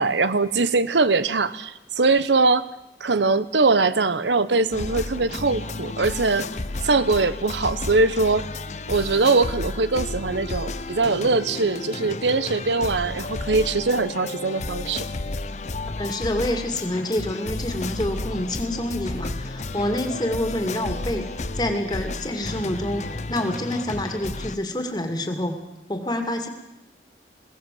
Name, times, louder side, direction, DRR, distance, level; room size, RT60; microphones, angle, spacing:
voice 1, 0.0-2.7 3.0-6.5 6.8-8.4 8.9-15.1, right 3 dB, 90° right, 14 dB, 1.0 m, -22 dB
sound 1, 4.7-24.6, left 2 dB, 40° left, 0.8 m, -32 dB
voice 2, 16.0-21.3 21.5-23.0 23.3-25.6 25.9-26.5, left 1 dB, 25° left, 5 dB, 2.4 m, -27 dB
21.5 x 17.5 x 7.7 m, 0.95 s
head